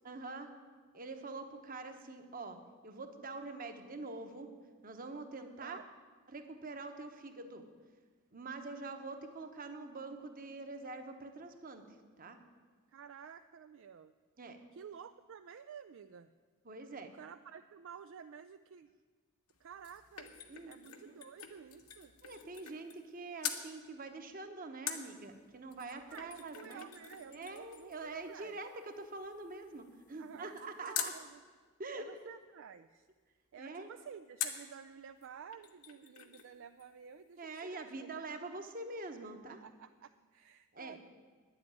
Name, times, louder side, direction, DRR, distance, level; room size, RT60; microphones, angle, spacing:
voice 1, 0.0-0.5 0.9-2.6 2.8-4.5 4.8-5.8 6.3-7.6 8.3-11.8 12.2-12.4 14.4-14.6 16.6-17.1 20.5-21.1 22.2-26.9 27.3-31.1 31.8-32.0 33.6-33.9 37.4-39.6 40.7-41.0, right 3 dB, 40° right, 6 dB, 1.1 m, -45 dB
voice 2, 5.6-5.9 12.9-14.1 14.7-16.3 17.1-18.9 19.6-20.3 20.7-22.1 26.1-28.6 30.2-31.4 31.9-33.1 33.5-38.1 39.5-41.0, right 7 dB, 60° right, 10 dB, 0.4 m, -52 dB
sound 1, 19.5-23.1 23.4-23.7 24.9-31.2 34.4-34.7 35.2-35.3 35.5-36.5 36.8-36.9, left 9 dB, 80° left, 1.2 m, -45 dB
10.5 x 7.9 x 9.2 m, 1.5 s
head